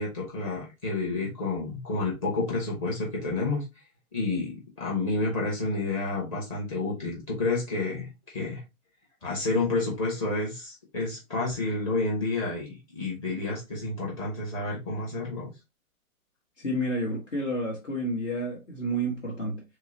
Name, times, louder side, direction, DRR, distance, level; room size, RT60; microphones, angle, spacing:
voice 1, 0.0-3.7 4.1-8.6 9.2-15.5, left 3 dB, 25° left, 1.0 m, -30 dB
voice 2, 16.6-19.6, right 1 dB, 60° left, 1.3 m, -30 dB
3.1 x 2.9 x 2.6 m
figure-of-eight pair, 130°, 42 cm